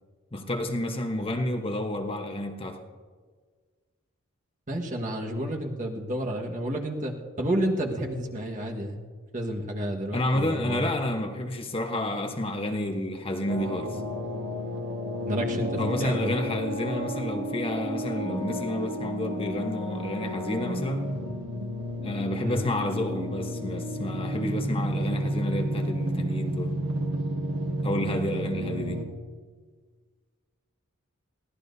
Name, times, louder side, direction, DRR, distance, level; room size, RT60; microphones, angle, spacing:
voice 1, 0.3-2.8 10.1-14.0 15.8-21.1 22.0-26.7 27.8-29.0, left 1 dB, 25° left, 1.0 m, -30 dB
voice 2, 4.7-9.0 9.3-10.9 15.3-16.4 22.4-22.6, right 1 dB, 40° right, 1.5 m, -30 dB
sound 1, 13.5-29.0, equal, 60° right, 1.5 m, -31 dB
23.0 x 16.0 x 2.7 m
head